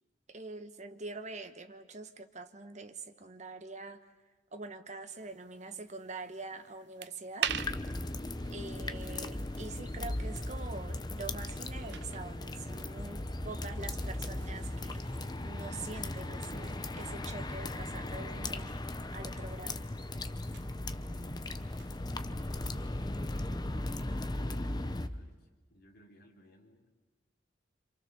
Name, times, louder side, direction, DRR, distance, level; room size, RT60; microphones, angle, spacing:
voice 1, 0.3-4.0 4.5-7.5 8.5-15.1 15.4-19.8, right 3 dB, 40° right, 8 dB, 1.4 m, -45 dB
sound 1, 5.1-22.2, right 9 dB, 65° right, 0.8 m, -47 dB
sound 2, 7.5-25.1, left 1 dB, 20° left, 0.9 m, -37 dB
voice 2, 21.4-26.9, left 1 dB, 55° left, 2 dB, 3.9 m, -62 dB
27.0 x 27.0 x 7.0 m, 1.2 s
head